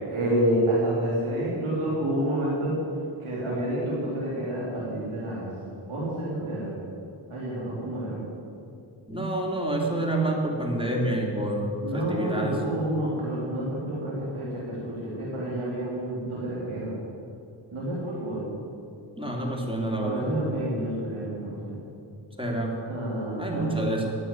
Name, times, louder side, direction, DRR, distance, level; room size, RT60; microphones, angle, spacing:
voice 1, 0.0-2.8 3.2-5.5 5.9-6.7 7.3-8.2 11.8-16.9 17.7-18.5 20.0-21.8 22.9-23.9, right 1 dB, 80° right, -6 dB, 3.4 m, -29 dB
voice 2, 9.1-12.6 19.2-20.3 22.4-22.8 23.4-24.1, right 1 dB, 10° right, -1 dB, 3.3 m, -28 dB
11.0 x 8.2 x 9.0 m, 2.5 s
cardioid pair, 45°, 50 cm